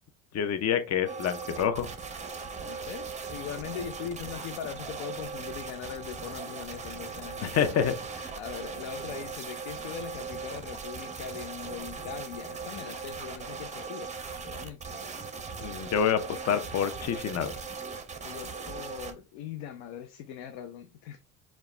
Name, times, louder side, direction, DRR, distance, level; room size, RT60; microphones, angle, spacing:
voice 1, 0.3-1.9 7.4-8.3 15.6-17.5, left 8 dB, 40° left, 0.7 m, -28 dB
sound 1, 1.1-19.1, right 5 dB, 15° right, 0.7 m, -39 dB
voice 2, 2.7-7.8 8.3-14.1 14.4-15.0 18.2-21.2, left 9 dB, 85° left, 0.6 m, -41 dB
4.6 x 2.4 x 3.2 m
supercardioid pair, 90°, 41 cm